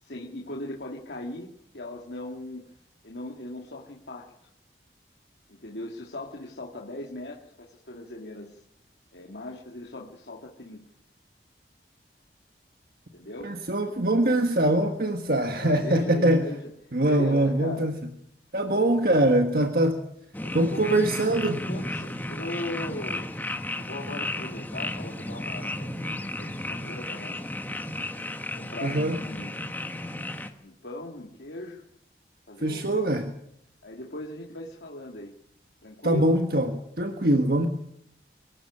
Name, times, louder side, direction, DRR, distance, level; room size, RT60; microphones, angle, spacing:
voice 1, 0.0-2.7 3.0-4.5 5.5-8.6 9.1-10.8 13.1-13.6 15.6-16.7 17.1-17.9 20.4-23.3 23.8-27.4 28.5-30.2 30.6-31.8 32.5-32.9 33.8-35.3 35.8-36.4, left 1 dB, 80° left, -2 dB, 2.2 m, -39 dB
voice 2, 13.4-16.5 16.9-17.9 18.5-20.0 20.5-21.6 28.8-29.2 32.6-33.3 36.0-37.7, right 1 dB, 55° right, 5 dB, 1.6 m, -23 dB
sound 1, 20.3-30.5, left 1 dB, 10° left, 1.4 m, -34 dB
23.5 x 13.5 x 8.5 m, 0.75 s
head